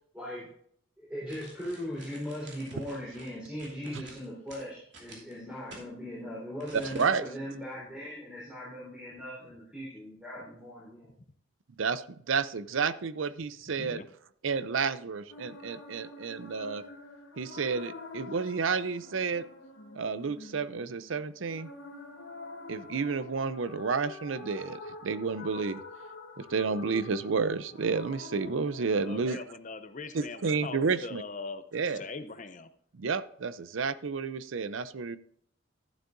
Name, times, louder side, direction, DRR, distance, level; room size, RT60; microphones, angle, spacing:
voice 1, 0.1-0.5 1.0-11.1, equal, 5° right, -7 dB, 3.7 m, -39 dB
sound 1, 1.3-5.9 6.6-7.4 7.7-7.8, right 3 dB, 60° right, 2.8 m, -51 dB
voice 2, 6.7-7.2 11.8-14.0 14.4-16.8 17.4-19.5 19.9-21.7 22.7-25.8 26.4-29.4 30.1-31.2 31.7-32.0 32.9-35.2, right 5 dB, 80° right, 14 dB, 0.6 m, -31 dB
sound 2, 15.3-29.2, left 3 dB, 70° left, 1.4 m, -47 dB
voice 3, 29.0-31.6 31.9-32.7, left 3 dB, 40° left, 10 dB, 0.6 m, -41 dB
12.5 x 11.5 x 2.6 m, 0.64 s
head